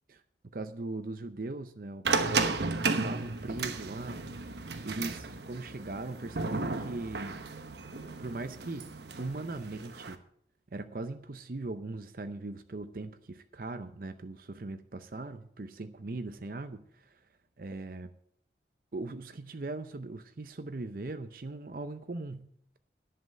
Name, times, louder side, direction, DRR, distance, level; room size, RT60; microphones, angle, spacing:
voice 1, 0.5-2.6 3.0-4.3 4.6-7.4 8.2-10.2 10.7-17.1 17.6-18.1 18.9-22.5, right 2 dB, 50° right, 9 dB, 0.6 m, -39 dB
sound 1, 2.0-10.1, right 4 dB, 75° right, 1.1 m, -34 dB
11.0 x 7.8 x 7.6 m, 0.67 s
head